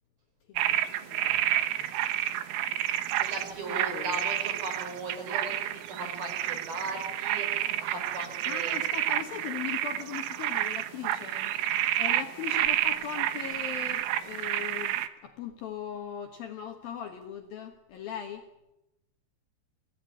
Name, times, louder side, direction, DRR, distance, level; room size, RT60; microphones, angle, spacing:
voice 1, 0.5-1.9 3.7-4.2 8.4-11.5 12.0-18.5, left 8 dB, 65° left, 5 dB, 2.7 m, -39 dB
sound 1, 0.6-15.1, right 13 dB, 85° right, 3.7 m, -30 dB
voice 2, 3.2-8.9, right 2 dB, 50° right, 5 dB, 6.7 m, -38 dB
28.5 x 17.5 x 9.8 m, 0.95 s
omnidirectional pair, 5.6 m